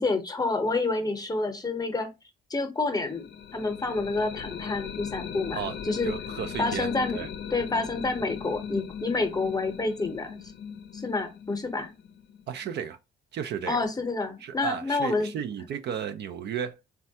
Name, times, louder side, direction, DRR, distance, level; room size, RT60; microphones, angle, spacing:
voice 1, 0.0-2.1 2.5-5.6 5.9-6.1 6.6-7.2 7.5-10.4 10.9-11.9 13.7-15.3, left 3 dB, 20° left, 0.7 m, -28 dB
sound 1, 2.9-12.7, left 7 dB, 60° left, 0.5 m, -39 dB
voice 2, 6.0-7.3 12.5-13.0 13.3-13.8 14.4-16.8, right 8 dB, 60° right, 0.4 m, -34 dB
3.2 x 2.2 x 2.7 m
cardioid pair, 90°, 20 cm